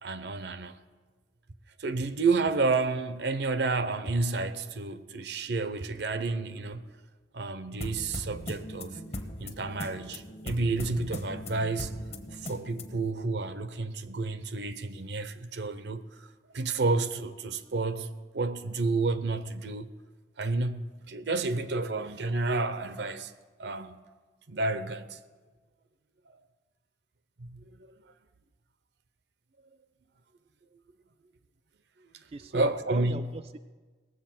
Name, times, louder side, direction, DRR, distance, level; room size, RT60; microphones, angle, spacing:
voice 1, 0.0-0.8 1.8-6.8 7.3-9.0 9.4-12.0 12.3-16.3 16.5-18.1 18.3-19.9 20.4-23.3 23.6-24.0 24.5-25.2 27.4-27.9 32.5-33.2, right 3 dB, 75° right, 0.7 m, -30 dB
sound 1, 7.8-13.1, left 1 dB, 35° left, 1.0 m, -39 dB
voice 2, 32.3-33.6, right 3 dB, 35° right, 0.3 m, -40 dB
18.5 x 7.7 x 5.9 m
head